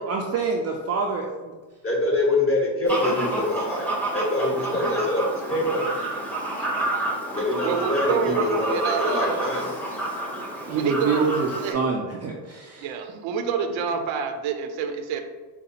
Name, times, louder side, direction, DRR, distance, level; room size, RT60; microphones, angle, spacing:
voice 1, 0.0-1.5 10.6-12.9, right 4 dB, 35° right, -1 dB, 0.4 m, -26 dB
voice 2, 1.8-5.8 7.3-9.7, left 1 dB, 30° left, -4 dB, 1.2 m, -25 dB
Fowl, 2.9-11.7, right 2 dB, 5° left, 0.8 m, -29 dB
voice 3, 7.6-9.5 10.7-11.3 11.6-11.8 12.8-15.2, right 6 dB, 80° right, 6 dB, 0.6 m, -28 dB
5.0 x 2.3 x 2.7 m, 1.3 s
cardioid pair, 110°, 46 cm